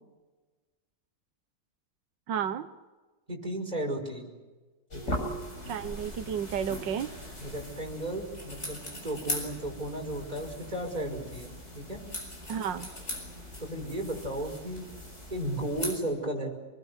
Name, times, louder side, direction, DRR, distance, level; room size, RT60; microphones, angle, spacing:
voice 1, 2.3-2.7 5.7-7.1 12.5-12.9, right 8 dB, 90° right, 10 dB, 1.7 m, -32 dB
voice 2, 3.3-4.3 4.9-5.2 7.4-12.0 13.6-14.9 15.3-16.5, right 1 dB, 20° right, 1 dB, 5.8 m, -34 dB
sound 1, 4.9-16.0, left 1 dB, 40° left, 7.5 m, -39 dB
28.0 x 21.0 x 8.2 m, 1.3 s
omnidirectional pair, 1.9 m